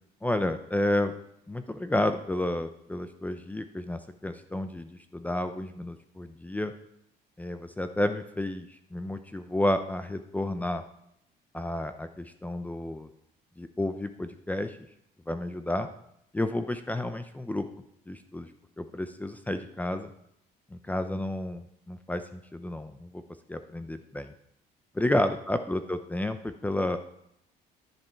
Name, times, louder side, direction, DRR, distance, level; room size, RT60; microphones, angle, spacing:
voice 1, 0.2-1.1 1.5-6.7 7.4-10.8 11.5-13.1 13.6-14.8 15.3-15.9 16.3-17.7 18.1-18.5 18.8-20.1 20.7-23.2 23.5-24.3 24.9-27.0, left 1 dB, 10° left, 9 dB, 0.6 m, -31 dB
10.5 x 7.6 x 5.8 m, 0.75 s
cardioid pair, 110°, 17 cm